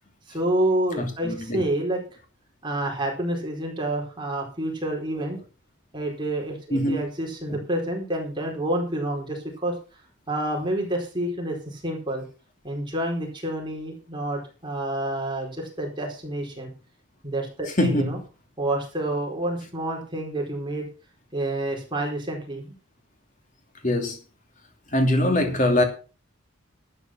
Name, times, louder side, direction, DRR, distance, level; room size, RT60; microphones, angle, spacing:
voice 1, 0.3-2.2 2.6-5.4 5.9-9.8 10.3-12.2 12.6-16.7 17.2-18.2 18.6-20.9 21.3-22.7, right 1 dB, 20° right, 4.6 m, -28 dB
voice 2, 1.0-1.6 6.7-7.0 17.8-18.1 23.8-24.2 24.9-25.8, left 1 dB, 40° left, 3.0 m, -22 dB
12.0 x 9.3 x 6.0 m
head